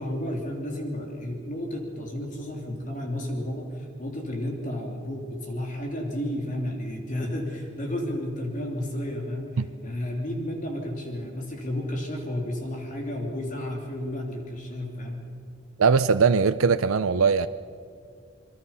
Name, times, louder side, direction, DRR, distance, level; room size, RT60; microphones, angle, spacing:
voice 1, 0.0-15.3, left 1 dB, 40° left, 1 dB, 3.0 m, -32 dB
voice 2, 15.8-17.5, right 5 dB, 85° right, 11 dB, 0.6 m, -20 dB
28.0 x 22.0 x 5.7 m, 2.3 s
head